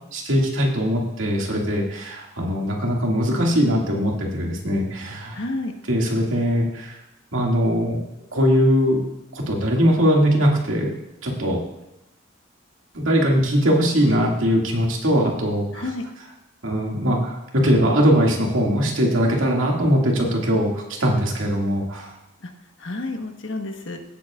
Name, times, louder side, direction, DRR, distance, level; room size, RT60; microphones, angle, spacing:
voice 1, 0.1-5.4 5.9-7.0 7.3-8.0 8.3-9.1 9.3-10.9 11.2-11.6 12.9-15.9 16.6-22.1, equal, 80° right, -1 dB, 2.1 m, -21 dB
voice 2, 5.3-5.7 15.7-16.1 22.4-22.5 22.8-24.0, left 2 dB, 75° left, 4 dB, 1.2 m, -30 dB
17.0 x 7.9 x 2.4 m, 0.91 s
head